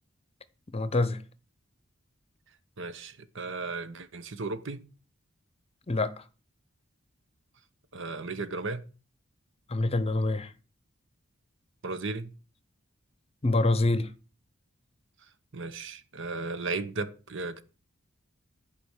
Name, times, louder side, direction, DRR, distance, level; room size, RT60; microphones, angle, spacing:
voice 1, 0.7-1.2 5.9-6.1 9.7-10.5 13.4-14.1, left 2 dB, 30° left, 0.8 m, -25 dB
voice 2, 2.8-4.8 7.9-8.8 11.8-12.3 15.5-17.6, right 3 dB, 65° right, 1.1 m, -35 dB
11.5 x 5.1 x 8.2 m
head